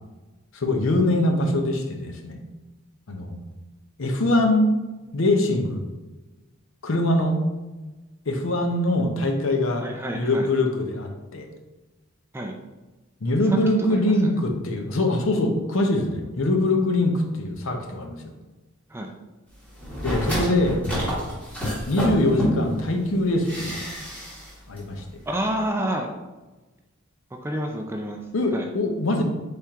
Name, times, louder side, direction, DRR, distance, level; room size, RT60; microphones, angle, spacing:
voice 1, 0.5-2.4 3.1-3.4 4.0-4.7 5.1-5.8 6.8-7.4 8.3-9.9 10.1-11.5 13.2-18.2 20.0-20.8 21.9-23.9 24.7-25.0 28.3-29.2, left 1 dB, 65° left, 3 dB, 0.7 m, -23 dB
voice 2, 9.8-10.5 12.3-12.5 13.4-13.6 13.9-14.3 18.9-19.1 25.3-26.1 27.4-28.2 28.5-28.7, right 1 dB, 10° right, 2 dB, 0.3 m, -29 dB
sound 1, 19.8-22.8 23.4-24.5 24.8-24.9, equal, 5° left, 1.2 m, -28 dB
4.4 x 3.4 x 3.6 m, 1.1 s
head